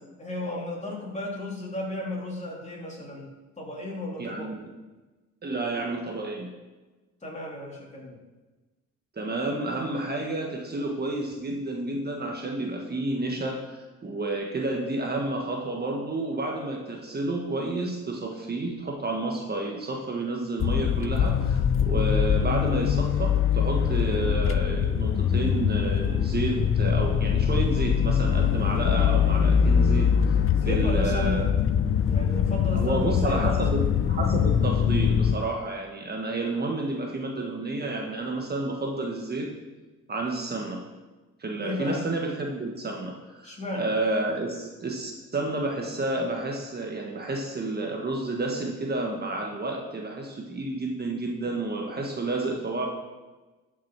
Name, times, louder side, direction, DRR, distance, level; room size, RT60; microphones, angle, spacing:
voice 1, 0.2-3.3 3.6-4.5 7.2-8.2 30.5-31.5 32.1-33.6 41.5-42.0 43.4-43.9, left 1 dB, 25° left, -3 dB, 3.3 m, -34 dB
voice 2, 4.2-4.7 5.4-6.5 9.2-30.1 30.7-31.5 32.7-39.5 40.1-40.8 41.4-52.9, right 2 dB, 35° right, 1 dB, 1.4 m, -30 dB
sound 1, 20.6-35.4, left 8 dB, 45° left, 0.6 m, -23 dB
12.0 x 6.1 x 4.7 m, 1.2 s
cardioid pair, 90°, 30 cm